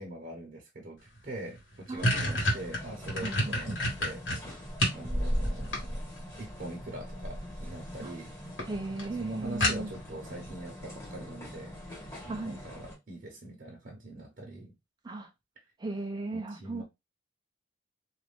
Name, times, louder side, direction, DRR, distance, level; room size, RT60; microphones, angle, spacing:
voice 1, 0.0-4.6 4.9-6.0 6.4-8.3 9.2-14.7 16.3-16.8, right 1 dB, 45° right, 0.8 m, -43 dB
sound 1, 1.2-1.3 1.6-5.0 5.4-6.3 7.4-7.8 8.2-8.3 8.6-8.7 9.0-9.1 9.6-10.2, equal, 85° left, 1.3 m, -29 dB
voice 2, 1.9-2.4 3.2-4.0 8.0-8.1 8.6-9.9 12.3-12.6 15.0-15.3 15.8-16.8, right 2 dB, 20° right, 0.4 m, -37 dB
sound 2, 2.0-13.0, equal, 15° left, 1.4 m, -39 dB
2.5 x 2.4 x 3.3 m
head